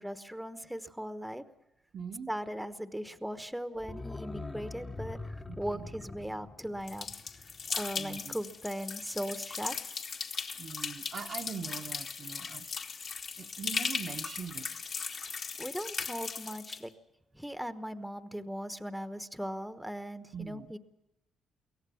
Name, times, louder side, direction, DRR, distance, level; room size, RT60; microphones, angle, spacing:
voice 1, 0.0-1.4 2.3-7.1 7.7-9.9 15.1-15.3 15.6-16.9 17.3-20.8, equal, 5° right, 10 dB, 1.1 m, -39 dB
voice 2, 1.9-2.3 5.5-5.9 8.0-8.3 10.6-13.0 13.4-14.7 20.3-20.7, right 6 dB, 50° right, 5 dB, 1.1 m, -42 dB
sound 1, 3.8-8.5 8.8-8.9, left 3 dB, 20° left, 1.1 m, -44 dB
sound 2, 6.9-16.8, left 5 dB, 50° left, 1.9 m, -38 dB
23.5 x 17.5 x 7.1 m, 0.95 s
cardioid pair, 85°, 0 cm